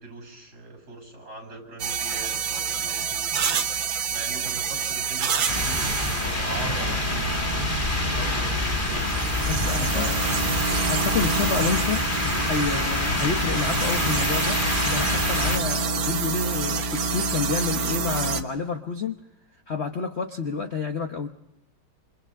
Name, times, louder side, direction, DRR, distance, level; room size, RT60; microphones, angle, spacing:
voice 1, 0.0-3.7 4.1-9.1 9.4-10.2, right 3 dB, 50° right, 4 dB, 7.6 m, -41 dB
sound 1, 1.8-18.4, right 4 dB, 70° right, 2.1 m, -28 dB
sound 2, 5.5-15.6, left 1 dB, 25° left, 2.5 m, -26 dB
voice 2, 9.5-10.1 10.8-12.1 12.4-19.2 19.7-21.3, left 5 dB, 40° left, 5 dB, 1.1 m, -29 dB
28.0 x 28.0 x 3.7 m, 0.86 s
omnidirectional pair, 2.3 m